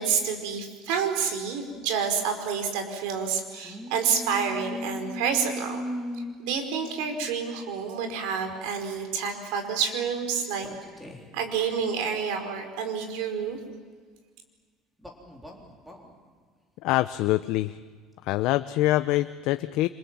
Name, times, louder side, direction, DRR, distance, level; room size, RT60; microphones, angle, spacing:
voice 1, 0.0-5.8 6.1-10.7 11.3-13.6, right 6 dB, 85° right, 6 dB, 5.0 m, -29 dB
sound 1, 3.6-7.6 8.5-8.7 10.6-11.4 15.0-16.1, equal, 5° right, 3.9 m, -38 dB
voice 2, 16.8-17.8 18.2-19.9, left 16 dB, 65° left, 12 dB, 0.7 m, -25 dB
28.5 x 27.0 x 7.6 m, 1.5 s
cardioid pair, 150°, 0 cm